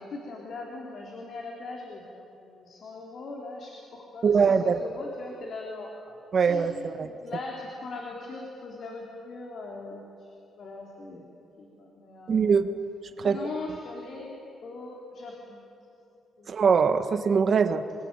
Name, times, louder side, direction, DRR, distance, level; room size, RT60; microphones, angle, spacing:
voice 1, 0.0-10.3 10.6-11.2 11.6-12.6 13.2-15.6 16.4-16.5, left 3 dB, 60° left, -1 dB, 3.8 m, -40 dB
voice 2, 4.2-4.8 6.3-7.1 12.3-12.7 13.2-13.4 16.5-17.8, right 6 dB, 50° right, 9 dB, 1.6 m, -22 dB
26.0 x 20.0 x 9.2 m, 2.6 s
cardioid pair, 90°, 0 cm